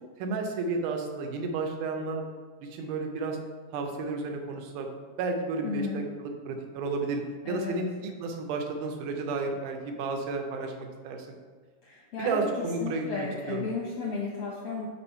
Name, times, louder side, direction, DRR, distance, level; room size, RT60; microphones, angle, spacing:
voice 1, 0.2-2.2 2.6-3.4 3.7-4.9 5.2-11.4 12.2-13.7, right 3 dB, 85° right, 3 dB, 2.3 m, -32 dB
voice 2, 5.6-6.0 7.4-7.8 11.8-14.9, left 4 dB, 75° left, -4 dB, 1.3 m, -34 dB
6.0 x 4.4 x 4.3 m, 1.5 s
omnidirectional pair, 3.6 m